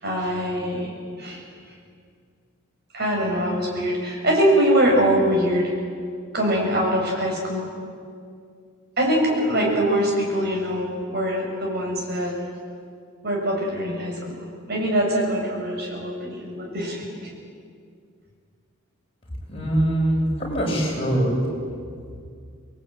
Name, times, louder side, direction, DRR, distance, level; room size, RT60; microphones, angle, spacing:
voice 1, 0.0-0.9 1.2-1.4 2.9-5.7 6.3-7.7 9.0-12.4 13.2-17.3, equal, 50° right, 0 dB, 7.0 m, -23 dB
voice 2, 19.5-21.4, right 1 dB, 25° left, -3 dB, 7.8 m, -22 dB
26.5 x 21.0 x 9.2 m, 2.2 s
head